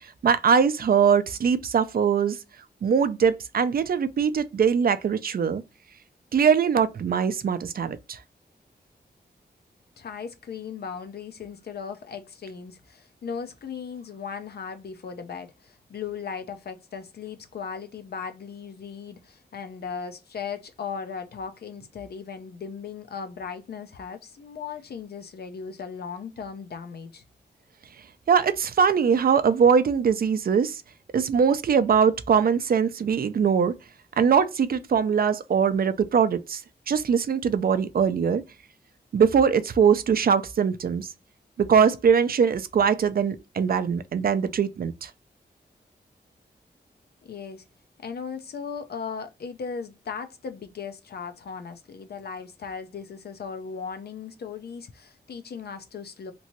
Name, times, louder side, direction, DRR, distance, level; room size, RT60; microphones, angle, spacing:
voice 1, 0.2-2.4 2.8-5.6 6.3-8.2 28.3-30.8 31.1-33.7 34.2-36.6 36.9-38.4 39.1-41.1 41.6-45.1, right 6 dB, 60° right, 0.4 m, -22 dB
voice 2, 10.0-27.2 47.2-47.6 48.0-56.3, left 6 dB, 70° left, 0.5 m, -37 dB
3.0 x 2.6 x 2.8 m
wide cardioid pair, 145°, 17 cm